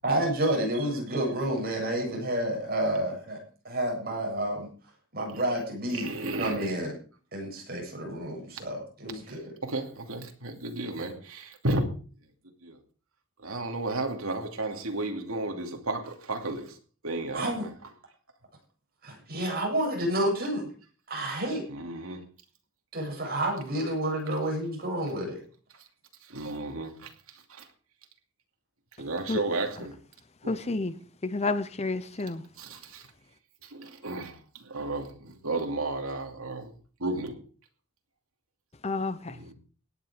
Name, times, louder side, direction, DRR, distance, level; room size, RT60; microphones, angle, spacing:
voice 1, 0.0-4.7 5.1-6.1 6.4-6.9 7.3-9.5 11.0-11.1 17.3-17.6 19.0-20.7 21.1-21.7 22.9-25.4, right 1 dB, 45° right, 7.7 m, -30 dB
voice 2, 5.9-6.8 9.2-11.9 12.6-12.8 13.4-16.8 17.0-17.7 21.7-22.2 25.7-25.8 26.2-27.7 29.0-30.0 30.4-30.6 32.6-33.1 33.6-36.7 37.0-37.4 39.3-39.5, right 2 dB, 80° right, 2.6 m, -33 dB
voice 3, 30.5-30.9 31.2-32.4 38.8-39.3, left 3 dB, 30° left, 0.8 m, -30 dB
17.0 x 10.0 x 5.1 m
head